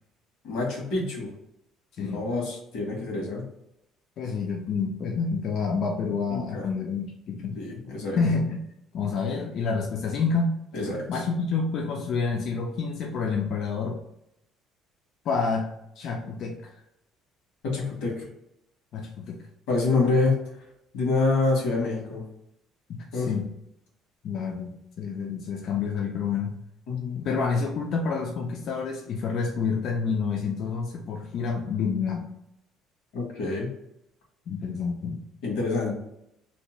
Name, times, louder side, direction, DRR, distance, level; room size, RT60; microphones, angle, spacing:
voice 1, 0.4-1.3 2.0-3.4 6.3-6.6 7.6-8.2 10.7-11.0 17.6-18.3 19.7-20.4 20.9-22.2 23.1-23.3 26.9-27.2 33.1-33.7 35.4-35.9, left 3 dB, 90° left, -2 dB, 1.2 m, -26 dB
voice 2, 4.2-7.6 8.2-8.6 8.9-10.6 11.1-14.0 15.3-16.7 18.9-19.4 22.9-23.5 24.2-26.6 27.2-32.3 34.5-35.2, left 5 dB, 45° left, 1 dB, 0.3 m, -28 dB
2.7 x 2.1 x 3.0 m, 0.81 s
cardioid pair, 160°, 0 cm